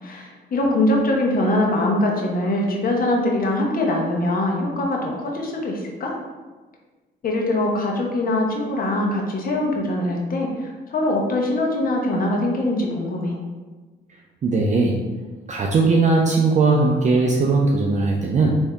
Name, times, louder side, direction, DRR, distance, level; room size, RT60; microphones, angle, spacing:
voice 1, 0.0-6.1 7.2-13.4, left 1 dB, 45° left, -1 dB, 0.9 m, -22 dB
voice 2, 14.4-15.0 15.5-18.6, right 3 dB, 35° right, -1 dB, 0.4 m, -19 dB
3.4 x 2.7 x 3.4 m, 1.3 s
cardioid pair, 90°, 20 cm